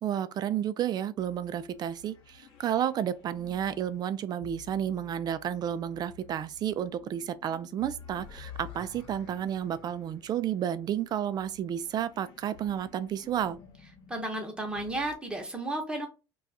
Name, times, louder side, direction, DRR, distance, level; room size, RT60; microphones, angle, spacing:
voice 1, 0.0-13.6, right 10 dB, 40° right, 0.3 m, -31 dB
sound 1, 1.2-15.1, left 7 dB, 55° left, 1.0 m, -52 dB
voice 2, 14.1-16.1, right 1 dB, 10° right, 0.9 m, -33 dB
2.3 x 2.3 x 4.0 m
supercardioid pair, 100°, 11 cm